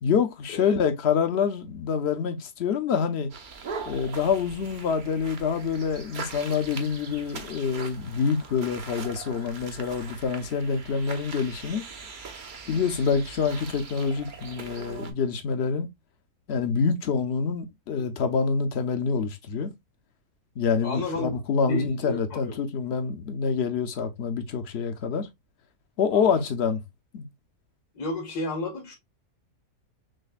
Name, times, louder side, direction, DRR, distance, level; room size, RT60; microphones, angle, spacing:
voice 1, 0.0-3.3 3.9-11.8 12.7-15.9 16.5-19.7 20.6-25.3 26.0-26.8 27.1-27.3, left 6 dB, 55° left, 0.7 m, -26 dB
sound 1, 3.3-15.1, right 5 dB, 55° right, 0.5 m, -41 dB
voice 2, 20.8-21.3 21.7-22.6 26.1-26.4 28.0-28.9, left 2 dB, 75° left, 1.8 m, -32 dB
6.3 x 2.2 x 2.4 m
omnidirectional pair, 1.7 m